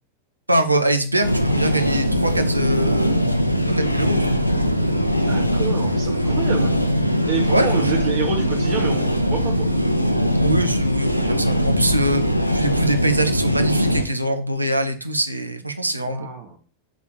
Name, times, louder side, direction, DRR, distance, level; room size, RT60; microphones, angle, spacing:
voice 1, 0.5-3.3 3.8-4.3 7.5-7.9 10.4-12.2 12.5-16.3, right 1 dB, 85° right, 7 dB, 0.7 m, -23 dB
sound 1, 1.2-14.0, equal, 90° left, 0.6 m, -20 dB
voice 2, 5.2-6.7 7.3-9.7 16.1-16.6, right 6 dB, 50° right, 0 dB, 1.4 m, -28 dB
6.1 x 3.5 x 4.6 m, 0.39 s
figure-of-eight pair, 90°, 0 cm